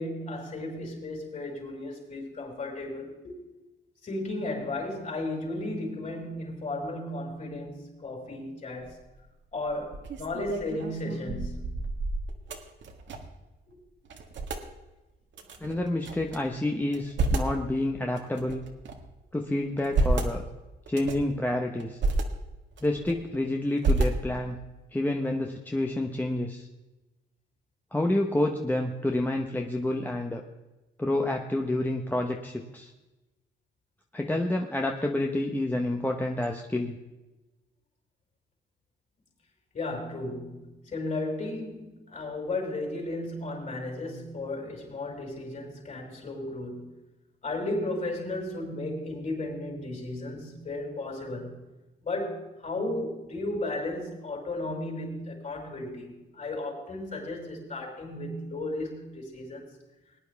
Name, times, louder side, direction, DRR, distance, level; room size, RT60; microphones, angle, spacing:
voice 1, 0.0-3.3 4.0-9.0 9.5-11.8 13.7-13.8 39.7-47.0 47.4-51.6 52.0-59.7, left 2 dB, 40° left, 5.0 m, -34 dB
sound 1, 8.8-9.2 9.7-13.4 13.7-13.8 14.1-14.6 15.3-16.4 16.8-17.6 18.2-19.1 19.6-20.3 20.9-21.3 21.8-22.2 22.7-23.4 23.8-24.5, right 2 dB, 65° right, 1.7 m, -30 dB
voice 2, 15.6-18.6 19.3-20.4 20.9-22.0 22.8-24.6 24.9-26.7 27.9-30.4 31.0-32.9 34.1-37.0, left 1 dB, 10° left, 1.0 m, -28 dB
20.0 x 9.7 x 3.5 m
cardioid pair, 90°, 20 cm